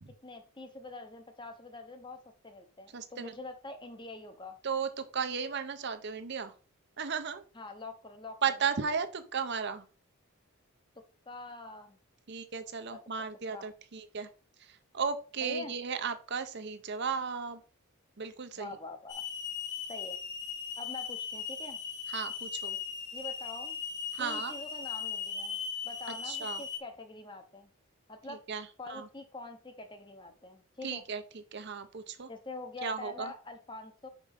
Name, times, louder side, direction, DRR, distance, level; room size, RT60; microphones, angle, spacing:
voice 1, 0.2-4.6 7.5-8.4 11.3-12.0 12.9-13.0 13.5-13.6 15.4-15.7 18.6-19.2 19.9-20.2 20.8-21.8 23.1-23.8 24.2-25.6 25.8-27.7 28.1-28.4 28.8-31.0 32.3-34.1, left 2 dB, 20° left, 7 dB, 0.9 m, -45 dB
voice 2, 2.9-3.3 4.6-6.5 7.0-7.4 8.4-9.9 12.3-14.3 14.6-17.6 18.2-18.8 22.1-22.8 24.1-24.5 26.2-26.6 28.3-29.1 30.8-31.2 31.5-32.3 32.8-33.3, right 6 dB, 50° right, 10 dB, 0.7 m, -35 dB
Hiss / Alarm, 19.1-26.8, left 6 dB, 50° left, 1.3 m, -38 dB
5.3 x 5.2 x 4.9 m, 0.38 s
head